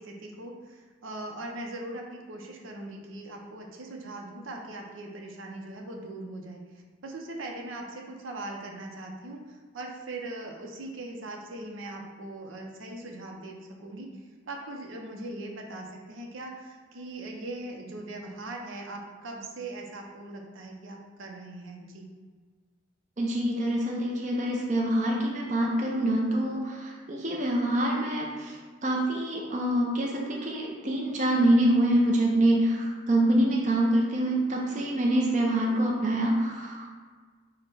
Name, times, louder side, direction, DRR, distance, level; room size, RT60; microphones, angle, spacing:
voice 1, 0.0-6.6 7.0-9.4 9.7-14.1 14.5-22.1 33.3-33.5, right 2 dB, 85° right, 1 dB, 0.7 m, -40 dB
voice 2, 23.2-37.0, right 1 dB, 40° right, -2 dB, 0.6 m, -25 dB
4.7 x 2.2 x 4.8 m, 1.5 s
head